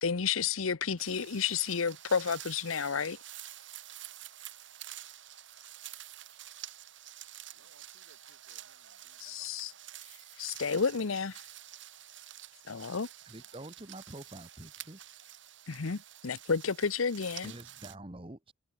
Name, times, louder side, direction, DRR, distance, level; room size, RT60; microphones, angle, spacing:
voice 1, 0.0-3.2 9.2-9.7 10.4-11.4 12.7-13.1 15.7-17.5, left 6 dB, 90° left, 0.8 m, -31 dB
sound 1, 1.0-18.0, right 12 dB, 65° right, 3.8 m, -49 dB
voice 2, 7.5-9.8, right 3 dB, 90° right, 4.6 m, -67 dB
voice 3, 13.2-15.0 17.4-18.5, right 1 dB, 25° right, 1.5 m, -46 dB
head